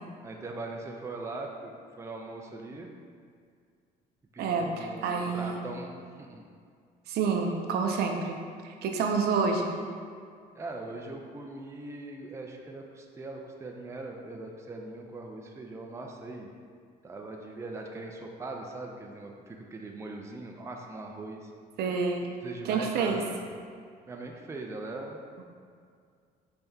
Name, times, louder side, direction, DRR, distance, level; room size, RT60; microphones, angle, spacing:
voice 1, 0.2-2.9 4.3-6.4 10.5-16.5 17.0-21.5 22.4-23.4 24.1-25.2, right 2 dB, 15° right, 1 dB, 0.4 m, -40 dB
voice 2, 4.4-5.6 7.1-8.4 8.6-9.7 21.8-22.3 22.6-23.2, right 5 dB, 70° right, 3 dB, 0.5 m, -28 dB
5.5 x 3.4 x 2.7 m, 2.2 s
cardioid pair, 110°, 17 cm